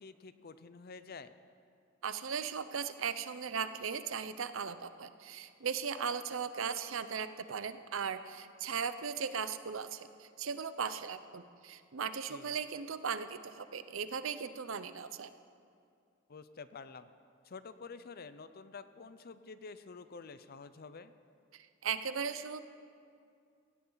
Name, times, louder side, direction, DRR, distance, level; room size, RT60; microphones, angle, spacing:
voice 1, 0.0-1.4 12.3-12.6 16.3-17.1 17.4-21.1, left 4 dB, 50° left, 12 dB, 0.6 m, -49 dB
voice 2, 2.0-15.3 21.5-22.7, right 6 dB, 85° right, 12 dB, 0.7 m, -38 dB
17.0 x 16.0 x 4.0 m, 2.3 s
head